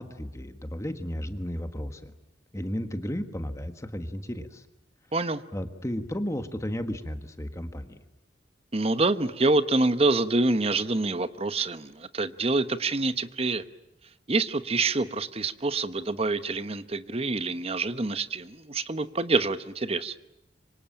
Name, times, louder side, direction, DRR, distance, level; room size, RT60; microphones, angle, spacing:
voice 1, 0.0-2.1 2.5-4.7 5.5-8.0, equal, 15° left, 8 dB, 1.4 m, -34 dB
voice 2, 5.1-5.4 8.7-13.6 14.3-20.1, right 3 dB, 35° right, 12 dB, 1.1 m, -26 dB
25.5 x 25.5 x 8.9 m, 0.85 s
head